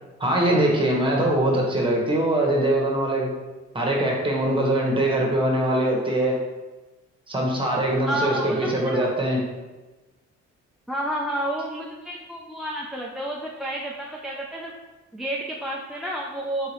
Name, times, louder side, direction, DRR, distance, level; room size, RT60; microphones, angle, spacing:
voice 1, 0.2-3.3 3.7-6.4 7.3-9.4, right 1 dB, 15° right, -2 dB, 1.1 m, -22 dB
voice 2, 8.1-9.2 10.9-14.7 15.1-16.7, right 1 dB, ahead, -2 dB, 0.3 m, -30 dB
3.8 x 3.8 x 3.0 m, 1.2 s
cardioid pair, 90°, 30 cm